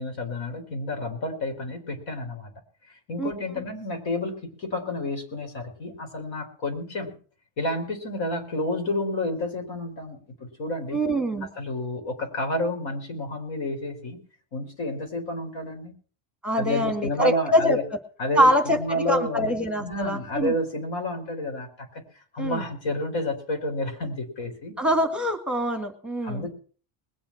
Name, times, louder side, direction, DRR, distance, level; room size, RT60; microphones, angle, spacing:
voice 1, 0.0-2.5 3.1-7.1 7.6-11.0 11.6-14.2 14.5-15.9 16.5-17.8 18.2-22.0 22.3-24.7 26.2-26.5, left 1 dB, 60° left, 5 dB, 4.8 m, -30 dB
voice 2, 10.9-11.5 16.4-17.8 18.4-18.8 19.1-20.5 22.4-22.6 24.8-26.5, equal, ahead, 5 dB, 2.1 m, -24 dB
21.0 x 7.7 x 6.0 m, 0.41 s
cardioid pair, 95°, 49 cm